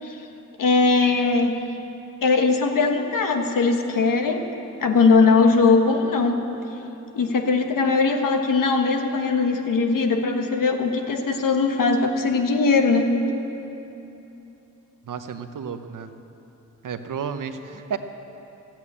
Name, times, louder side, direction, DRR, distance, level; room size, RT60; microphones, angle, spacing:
voice 1, 0.6-1.5 2.2-4.4 4.8-6.4 7.1-13.1, left 4 dB, 85° left, 4 dB, 1.2 m, -20 dB
voice 2, 15.0-16.1 16.8-18.0, right 6 dB, 75° right, 8 dB, 0.9 m, -32 dB
13.0 x 8.8 x 8.6 m, 2.9 s
wide cardioid pair, 85°, 32 cm